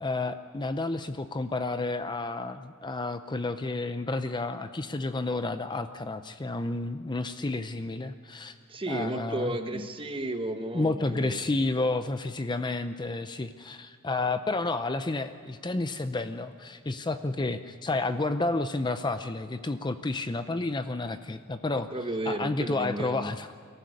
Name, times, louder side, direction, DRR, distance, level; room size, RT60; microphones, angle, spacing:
voice 1, 0.0-8.6 8.9-9.9 10.7-21.9 22.3-23.5, left 2 dB, 20° left, 10 dB, 0.6 m, -31 dB
voice 2, 8.7-11.4 21.7-23.3, right 1 dB, 25° right, 7 dB, 1.3 m, -33 dB
23.0 x 14.5 x 9.5 m, 2.3 s
head